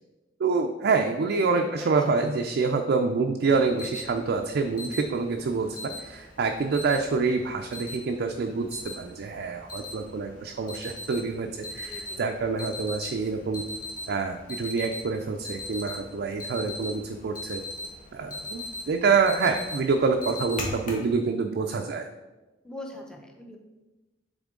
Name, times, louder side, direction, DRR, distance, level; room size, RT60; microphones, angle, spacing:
voice 1, 0.4-11.5 11.7-13.6 14.1-17.6 18.1-22.1, right 4 dB, 60° right, 3 dB, 0.4 m, -26 dB
voice 2, 1.5-2.2 11.8-12.2 22.6-23.6, left 1 dB, 5° left, 1 dB, 0.6 m, -43 dB
Alarm, 3.5-21.1, left 2 dB, 45° left, 1.2 m, -40 dB
7.0 x 3.6 x 3.7 m, 1.1 s
head